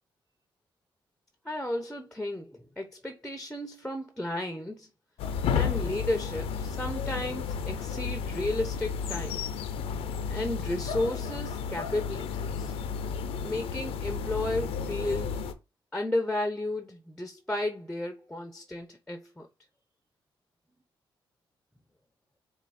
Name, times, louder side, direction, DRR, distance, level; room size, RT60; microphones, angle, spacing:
voice 1, 1.4-4.9 5.5-9.5 10.3-12.7 13.4-15.4 15.9-19.5, left 1 dB, 5° left, 0.7 m, -33 dB
sound 1, 5.2-15.5, left 6 dB, 90° left, 0.5 m, -32 dB
4.4 x 2.3 x 4.1 m
cardioid pair, 70°, 9 cm